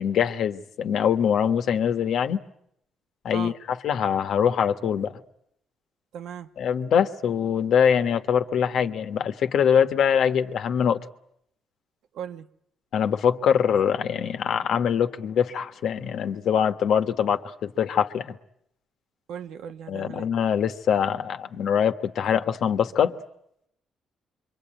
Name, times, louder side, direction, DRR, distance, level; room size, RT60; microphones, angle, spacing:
voice 1, 0.0-2.4 3.2-3.5 3.8-5.2 6.6-11.1 12.9-18.4 19.9-23.1, left 8 dB, 70° left, 1.4 m, -23 dB
voice 2, 6.1-6.5 12.1-12.5 19.3-20.3, right 8 dB, 80° right, 1.3 m, -37 dB
26.5 x 24.0 x 9.0 m
cardioid pair, 90°, 0 cm